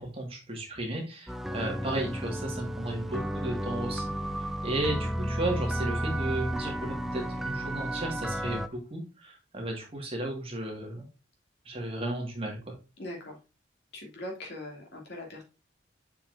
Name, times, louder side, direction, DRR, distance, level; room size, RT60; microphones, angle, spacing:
voice 1, 0.0-4.0 4.6-11.1 11.7-12.8, right 1 dB, 30° right, 0 dB, 1.9 m, -34 dB
sound 1, 1.3-8.7, right 1 dB, ahead, 0.4 m, -32 dB
voice 2, 13.0-13.4 13.9-15.4, left 1 dB, 60° left, -1 dB, 2.6 m, -41 dB
6.9 x 5.7 x 2.7 m, 0.30 s
head